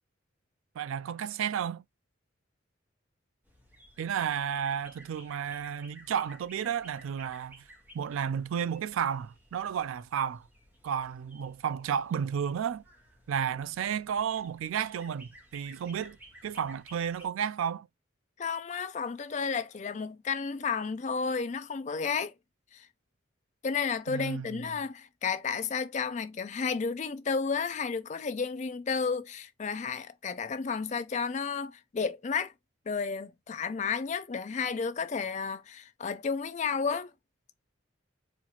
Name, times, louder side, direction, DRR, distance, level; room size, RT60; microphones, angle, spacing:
voice 1, 0.8-1.8 4.0-7.7 7.9-10.5 10.8-12.8 13.3-16.2 16.4-17.9 24.1-24.6, right 8 dB, 90° right, 0.3 m, -32 dB
sound 1, 3.5-17.3, equal, 10° right, 0.9 m, -56 dB
voice 2, 18.4-22.3 22.7-22.9 23.6-32.5 32.9-37.1, left 5 dB, 35° left, 0.4 m, -32 dB
4.3 x 2.4 x 2.8 m
head